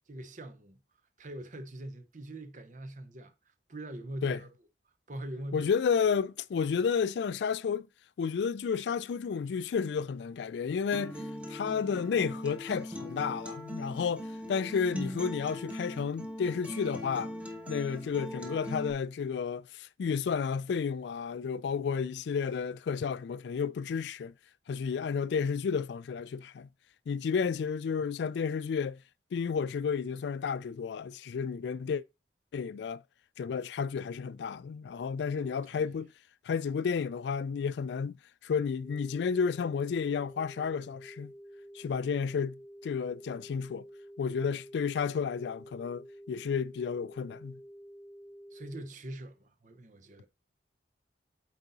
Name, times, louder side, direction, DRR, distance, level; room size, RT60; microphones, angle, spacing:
voice 1, 0.1-0.8 1.2-3.3 3.7-4.5 5.1-5.7 35.3-35.9 48.5-50.3, right 1 dB, 45° right, 0.8 m, -43 dB
voice 2, 5.5-7.9 8.2-11.2 11.5-17.3 17.7-24.3 24.7-26.7 27.1-29.0 29.3-32.0 32.5-33.0 33.4-36.1 36.4-38.2 38.4-41.3 41.7-42.6 42.8-43.9 44.2-47.6, left 6 dB, 75° left, 0.3 m, -31 dB
Acoustic guitar, 10.9-18.9, left 1 dB, 5° right, 1.0 m, -40 dB
sound 1, 38.8-48.8, equal, 10° left, 0.7 m, -50 dB
8.3 x 4.0 x 4.0 m
head